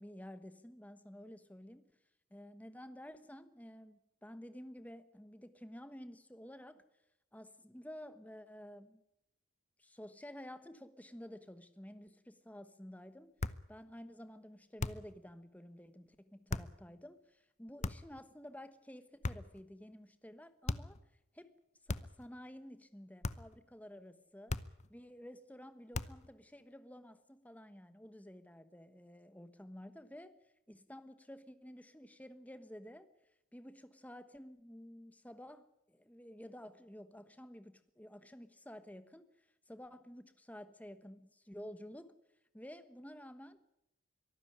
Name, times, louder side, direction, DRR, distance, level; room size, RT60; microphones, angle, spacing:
voice 1, 0.0-1.9 2.3-6.8 7.3-9.0 9.8-13.4 13.7-21.0 21.3-21.6 21.8-24.6 24.9-33.1 33.5-42.2 42.5-43.6, equal, 5° left, 11 dB, 1.2 m, -52 dB
sound 1, 13.4-13.7 14.8-15.2 16.5-16.8 17.8-18.2 19.2-19.6 20.7-21.0 21.9-22.3 23.2-23.6 24.5-24.9 25.9-26.3, left 2 dB, 30° left, 0.7 m, -39 dB
23.5 x 12.5 x 9.9 m, 0.85 s
head